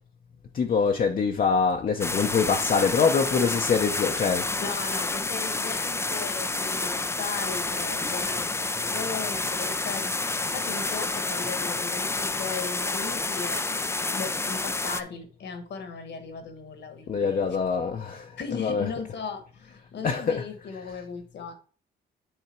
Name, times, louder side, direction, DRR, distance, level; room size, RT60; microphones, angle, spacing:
voice 1, 0.5-4.7 17.1-18.9 20.0-20.5 20.7-21.0, left 5 dB, 45° left, 0.8 m, -25 dB
sound 1, 2.0-15.0, left 3 dB, 15° left, 0.5 m, -29 dB
voice 2, 4.6-10.1 10.5-17.4 18.4-21.5, left 5 dB, 60° left, 1.5 m, -37 dB
9.0 x 3.6 x 4.4 m
cardioid pair, 90°, 20 cm